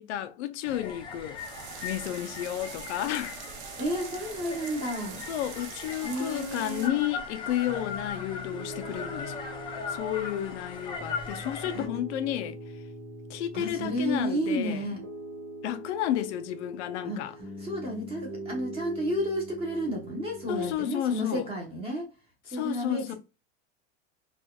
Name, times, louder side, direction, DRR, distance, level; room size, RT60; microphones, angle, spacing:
voice 1, 0.0-1.4 1.8-3.5 5.3-9.4 9.9-12.6 13.3-14.8 15.6-17.3 20.5-21.5 22.5-23.1, left 12 dB, 75° left, 0.5 m, -32 dB
sound 1, 0.6-11.9, left 4 dB, 15° left, 0.5 m, -39 dB
sound 2, 1.4-6.9, right 7 dB, 70° right, 0.8 m, -44 dB
voice 2, 3.8-5.2 6.0-7.0 11.7-11.9 13.5-15.0 17.0-17.2 17.6-22.1 22.5-23.1, equal, 15° right, 1.1 m, -31 dB
Piano, 7.6-20.7, equal, 45° right, 1.5 m, -42 dB
4.1 x 2.4 x 2.3 m
supercardioid pair, 160°, 34 cm